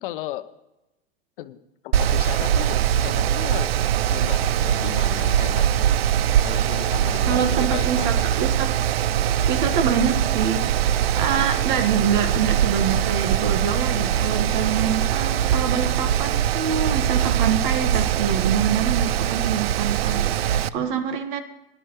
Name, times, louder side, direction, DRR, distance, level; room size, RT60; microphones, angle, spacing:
voice 1, 0.0-0.5 1.4-3.7 4.1-5.9 6.4-8.3, left 13 dB, 60° left, 12 dB, 0.9 m, -35 dB
Mechanical fan, 1.9-20.7, right 10 dB, 80° right, 0.5 m, -22 dB
voice 2, 7.2-8.7 9.5-21.4, right 7 dB, 55° right, 7 dB, 1.5 m, -26 dB
sound 1, 9.0-15.2, left 8 dB, 80° left, 1.3 m, -45 dB
18.0 x 11.0 x 3.1 m, 0.94 s
hypercardioid pair, 130°, 30 cm